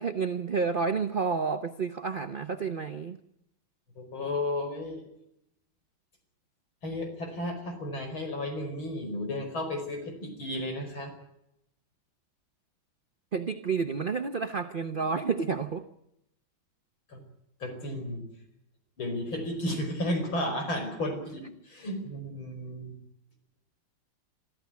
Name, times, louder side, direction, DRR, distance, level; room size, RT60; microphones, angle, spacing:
voice 1, 0.0-3.2 13.3-15.8, right 5 dB, 40° right, 8 dB, 0.7 m, -30 dB
voice 2, 4.0-5.0 6.8-11.1 14.9-15.0 17.1-17.2 17.6-18.3 19.0-23.0, left 1 dB, 80° left, 5 dB, 5.8 m, -33 dB
23.5 x 13.5 x 9.6 m, 0.80 s
omnidirectional pair, 2.2 m